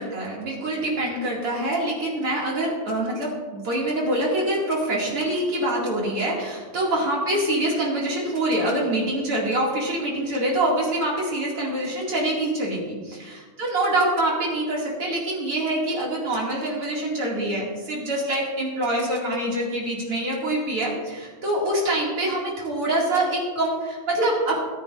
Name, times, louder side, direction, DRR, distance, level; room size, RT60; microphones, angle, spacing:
voice 1, 0.0-13.1 13.6-24.7, right 1 dB, 45° right, -4 dB, 1.9 m, -25 dB
23.0 x 9.8 x 2.5 m, 1.4 s
omnidirectional pair, 5.9 m